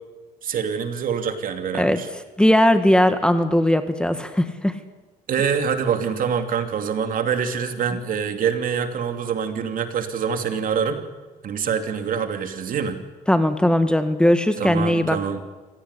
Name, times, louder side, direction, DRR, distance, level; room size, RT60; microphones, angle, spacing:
voice 1, 0.4-2.1 5.3-11.0 11.4-13.0 14.6-15.4, right 7 dB, 55° right, 7 dB, 2.9 m, -25 dB
voice 2, 2.4-4.8 13.3-15.2, left 1 dB, 5° left, 9 dB, 1.6 m, -18 dB
26.0 x 17.5 x 9.9 m, 1.3 s
cardioid pair, 110°, 17 cm